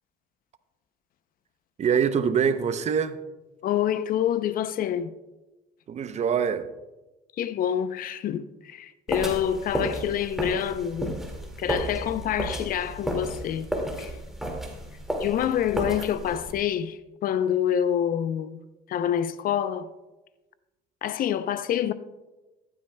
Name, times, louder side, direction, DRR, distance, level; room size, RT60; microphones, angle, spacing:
voice 1, 1.8-3.2 5.9-6.7, right 7 dB, 40° right, 0.6 m, -24 dB
voice 2, 3.6-5.2 7.4-11.2 11.6-13.7 14.0-14.1 15.2-18.6 18.9-19.9 21.0-21.9, left 10 dB, 55° left, 0.5 m, -27 dB
sound 1, 9.1-16.5, right 1 dB, ahead, 2.0 m, -32 dB
14.0 x 12.0 x 2.2 m
cardioid pair, 110°, 17 cm